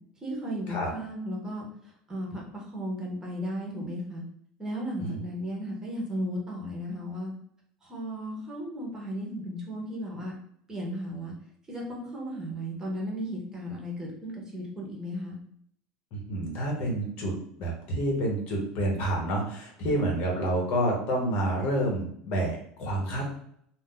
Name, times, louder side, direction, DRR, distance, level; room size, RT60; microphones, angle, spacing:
voice 1, 0.2-4.2 4.6-7.3 7.8-10.3 10.7-11.3 11.7-15.4, equal, 20° right, -2 dB, 0.9 m, -35 dB
voice 2, 16.1-17.3 17.6-23.4, right 1 dB, 55° left, 0 dB, 1.0 m, -28 dB
2.6 x 2.1 x 3.7 m, 0.68 s
supercardioid pair, 125°, 3 cm